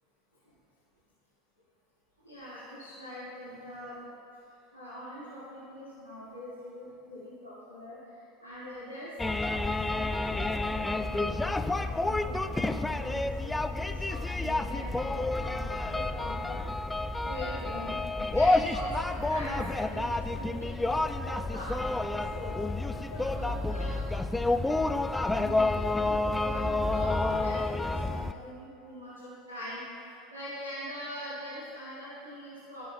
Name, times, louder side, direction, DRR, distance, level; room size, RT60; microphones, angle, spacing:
voice 1, 2.2-4.0 4.7-24.3 24.9-25.1 25.4-32.8, equal, 85° right, -11 dB, 2.0 m, -43 dB
sound 1, 9.2-28.3, left 2 dB, 10° left, 0.3 m, -29 dB
15.5 x 6.2 x 2.3 m, 2.7 s
figure-of-eight pair, 75°, 0 cm